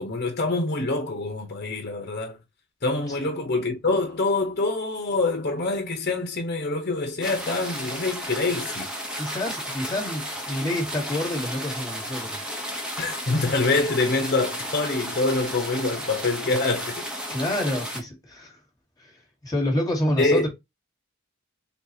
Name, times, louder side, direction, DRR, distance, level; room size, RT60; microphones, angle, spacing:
voice 1, 0.0-2.4 2.8-8.9 13.0-17.0 20.2-20.4, left 3 dB, 50° left, 1.1 m, -25 dB
sound 1, 7.2-18.0, equal, 5° right, 1.1 m, -33 dB
voice 2, 9.2-12.4 17.3-18.5 19.0-19.1 19.4-20.5, left 1 dB, 20° left, 1.6 m, -28 dB
4.0 x 3.7 x 2.8 m
head